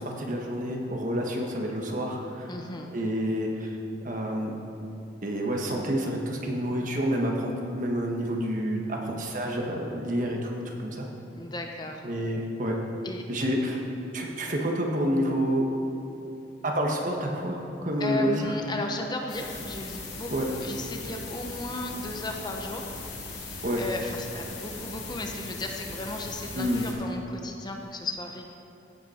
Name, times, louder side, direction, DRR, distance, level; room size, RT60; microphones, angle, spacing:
voice 1, 0.0-2.5 2.9-3.8 4.0-4.5 5.2-11.0 12.0-12.8 13.3-13.8 14.1-15.7 16.6-18.5 20.3-20.5 23.6-23.8 26.5-26.8, equal, 45° right, 1 dB, 1.3 m, -28 dB
voice 2, 2.5-2.9 11.4-12.1 13.0-13.2 18.0-28.5, left 2 dB, 25° left, 2 dB, 0.8 m, -35 dB
sound 1, 19.3-26.9, left 3 dB, 80° left, 2.5 m, -39 dB
14.5 x 8.0 x 4.3 m, 2.8 s
head